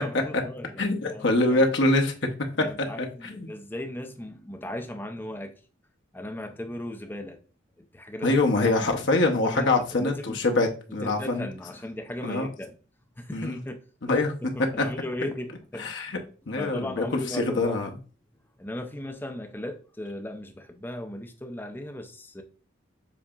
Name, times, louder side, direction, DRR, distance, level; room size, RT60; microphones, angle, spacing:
voice 1, 0.0-1.6 2.6-5.5 6.1-7.4 7.8-8.4 8.8-8.9 9.4-10.4 11.0-12.7 13.2-13.8 14.1-15.9 16.6-17.8 18.6-22.4, left 1 dB, 10° left, 0.4 m, -37 dB
voice 2, 0.8-2.1 2.8-3.5 8.2-11.5 12.2-12.5 13.3-13.6 14.0-14.9 15.8-16.2 16.5-17.9, left 2 dB, 60° left, 0.7 m, -24 dB
7.0 x 2.8 x 2.3 m
head